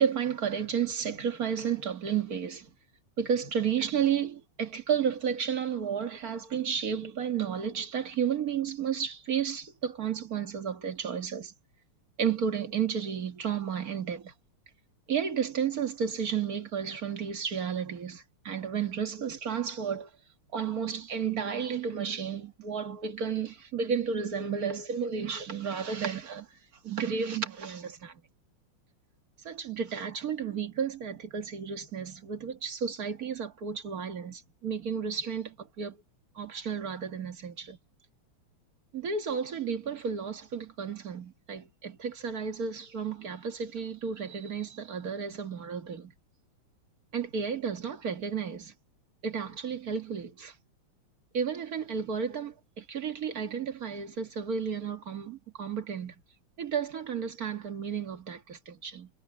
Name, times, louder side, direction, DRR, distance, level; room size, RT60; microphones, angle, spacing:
voice 1, 0.0-2.7 3.2-11.5 12.2-14.3 15.1-20.1 20.5-26.5 26.8-28.1 29.5-36.0 36.4-37.8 38.9-46.1 47.1-48.7 49.2-50.5 51.3-56.1 56.6-59.1, right 7 dB, 45° right, 2.0 m, -32 dB
omnidirectional pair, 2.4 m